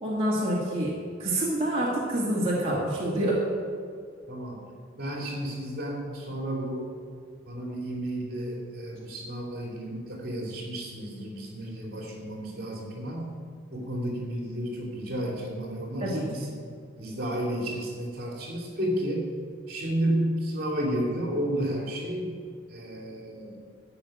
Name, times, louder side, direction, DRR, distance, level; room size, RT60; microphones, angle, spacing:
voice 1, 0.0-3.5 16.0-16.5, right 1 dB, 30° right, -7 dB, 2.2 m, -27 dB
voice 2, 4.3-4.6 5.0-6.9 7.5-13.3 13.7-16.5 17.0-19.3 19.7-22.3 22.7-23.6, right 1 dB, 50° right, -1 dB, 2.9 m, -32 dB
13.5 x 5.9 x 8.8 m, 2.2 s
head